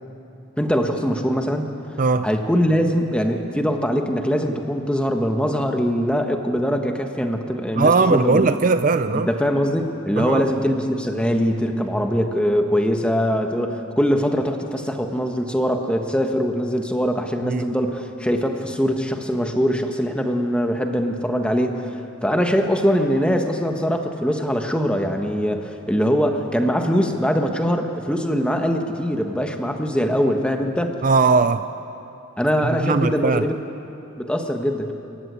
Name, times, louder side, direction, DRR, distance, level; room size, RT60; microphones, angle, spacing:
voice 1, 0.6-1.7 2.2-8.5 9.1-22.0 22.2-31.0 32.4-33.5 34.2-34.9, equal, 5° left, 4 dB, 1.4 m, -22 dB
voice 2, 7.8-9.3 10.2-10.5 17.4-17.7 31.0-31.7 32.6-33.4, right 4 dB, 40° right, 11 dB, 0.4 m, -19 dB
26.5 x 15.0 x 9.7 m, 2.9 s
head